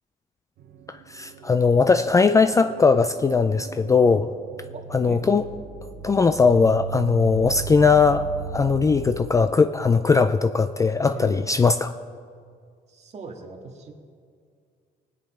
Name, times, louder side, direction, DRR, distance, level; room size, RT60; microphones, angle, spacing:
sound 1, 0.6-9.2, right 6 dB, 60° right, 1.0 m, -37 dB
voice 1, 0.9-4.3 4.9-5.4 6.0-8.2 8.5-11.9, left 4 dB, 20° left, 11 dB, 0.4 m, -19 dB
voice 2, 4.7-5.2 7.8-8.0 11.1-11.5 12.9-13.9, right 4 dB, 40° right, 2 dB, 2.0 m, -40 dB
20.5 x 9.5 x 4.4 m, 2.2 s
cardioid pair, 110°, 17 cm